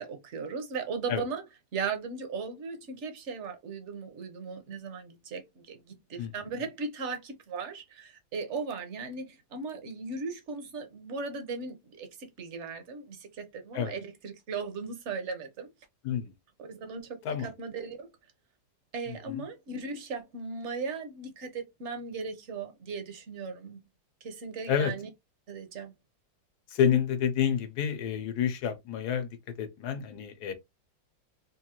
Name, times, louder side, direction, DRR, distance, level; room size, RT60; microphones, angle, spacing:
voice 1, 0.0-1.4 1.7-15.7 16.6-18.1 18.9-23.8 24.2-25.1 25.5-25.9, right 4 dB, 50° right, 1.0 m, -37 dB
voice 2, 19.1-19.4 24.7-24.9 26.7-30.5, left 8 dB, 65° left, 1.3 m, -29 dB
3.8 x 2.6 x 2.9 m
omnidirectional pair, 2.0 m